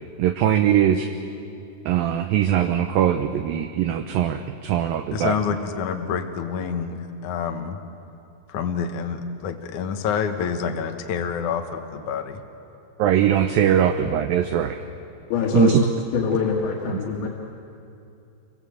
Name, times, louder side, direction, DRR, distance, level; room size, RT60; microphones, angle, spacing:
voice 1, 0.2-1.1 1.9-5.3 13.0-14.8 15.5-15.8 17.2-17.3, right 10 dB, 75° right, 7 dB, 2.2 m, -21 dB
voice 2, 5.1-7.8 8.5-12.4, left 7 dB, 60° left, 5 dB, 2.2 m, -27 dB
voice 3, 15.3-15.7 16.1-17.3, left 6 dB, 90° left, -2 dB, 4.2 m, -23 dB
29.0 x 23.5 x 8.0 m, 2.7 s
omnidirectional pair, 4.9 m